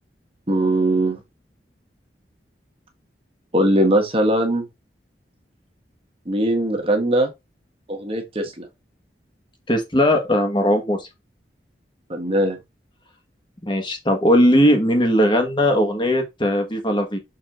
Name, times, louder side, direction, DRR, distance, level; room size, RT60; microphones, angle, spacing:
voice 1, 0.5-1.2 3.5-4.6 6.3-7.3 7.9-8.7 12.1-12.6, right 1 dB, 30° right, 1.6 m, -20 dB
voice 2, 9.7-11.1 13.6-17.2, equal, 25° left, 1.8 m, -18 dB
6.6 x 4.3 x 3.9 m
head